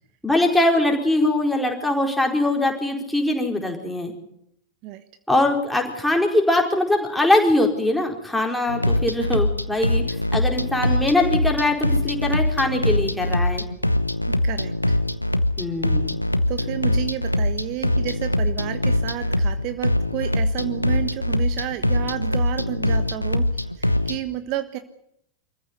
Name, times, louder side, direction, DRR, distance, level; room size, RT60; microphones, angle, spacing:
voice 1, 0.2-4.1 5.3-10.0 10.3-13.6 15.6-16.1, left 2 dB, 5° left, 1 dB, 4.6 m, -22 dB
sound 1, 8.7-24.2, left 1 dB, 90° left, 1.1 m, -23 dB
voice 2, 14.3-15.0 16.5-24.8, right 13 dB, 40° right, 10 dB, 1.4 m, -31 dB
26.5 x 15.0 x 9.7 m, 0.76 s
figure-of-eight pair, 90°, 0 cm